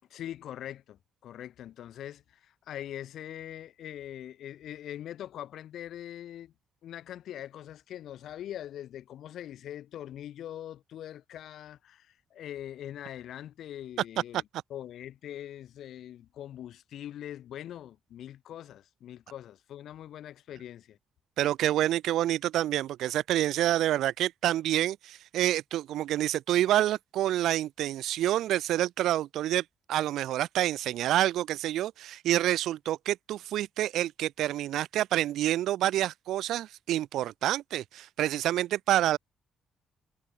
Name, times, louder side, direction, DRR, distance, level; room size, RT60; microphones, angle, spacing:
voice 1, 0.1-6.5 6.8-21.0, left 11 dB, 75° left, 4.4 m, -42 dB
voice 2, 21.4-39.2, right 13 dB, 80° right, 0.6 m, -28 dB
cardioid pair, 90°, 0 cm